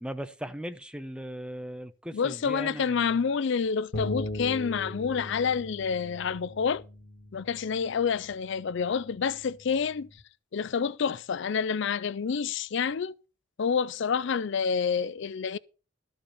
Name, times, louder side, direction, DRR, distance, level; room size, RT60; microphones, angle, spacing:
voice 1, 0.0-3.2, equal, 5° right, 0.7 m, -38 dB
voice 2, 2.1-6.8 7.3-10.1 10.5-13.1 13.6-15.6, left 6 dB, 60° left, 0.4 m, -28 dB
sound 1, 3.9-10.2, left 1 dB, 80° left, 2.1 m, -40 dB
13.5 x 5.3 x 6.8 m
head